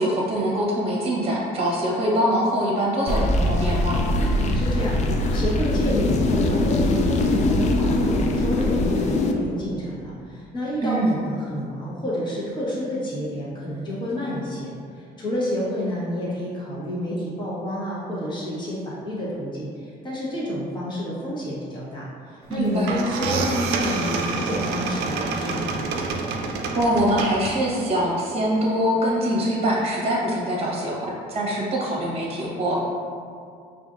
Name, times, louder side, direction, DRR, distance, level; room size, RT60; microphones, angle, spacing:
voice 1, 0.0-4.0 10.8-11.1 22.5-23.0 26.7-32.8, equal, 35° right, -3 dB, 0.9 m, -23 dB
sound 1, 3.1-9.3, left 1 dB, 45° left, 0.4 m, -22 dB
voice 2, 4.5-25.8, equal, 25° left, -7 dB, 1.2 m, -29 dB
sound 2, 22.5-22.6 22.9-27.8, right 4 dB, 85° right, 0.4 m, -27 dB
5.0 x 2.6 x 2.4 m, 2.2 s
cardioid pair, 110°, 17 cm